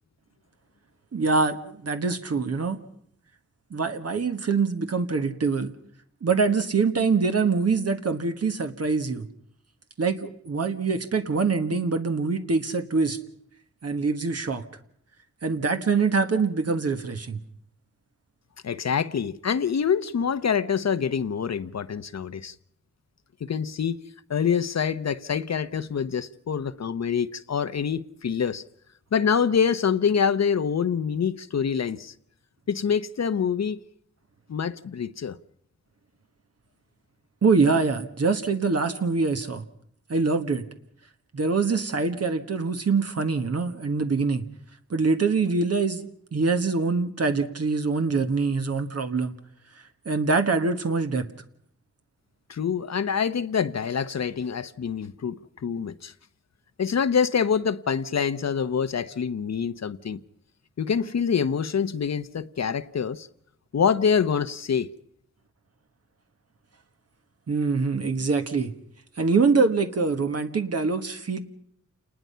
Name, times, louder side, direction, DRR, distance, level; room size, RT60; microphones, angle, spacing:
voice 1, 1.1-2.8 3.7-5.7 6.2-9.3 10.0-13.2 13.8-14.6 15.4-17.4 37.4-39.6 40.1-40.6 41.3-44.4 44.9-49.3 49.8-51.3 67.5-68.7 69.2-71.4, right 4 dB, 60° right, 1.5 m, -24 dB
voice 2, 18.6-22.5 23.4-24.0 24.3-28.6 29.1-32.1 32.7-33.8 34.5-35.4 52.5-56.1 56.8-60.2 60.8-63.3 63.7-64.9, left 7 dB, 65° left, 0.8 m, -26 dB
28.5 x 20.0 x 5.6 m
wide cardioid pair, 110°, 29 cm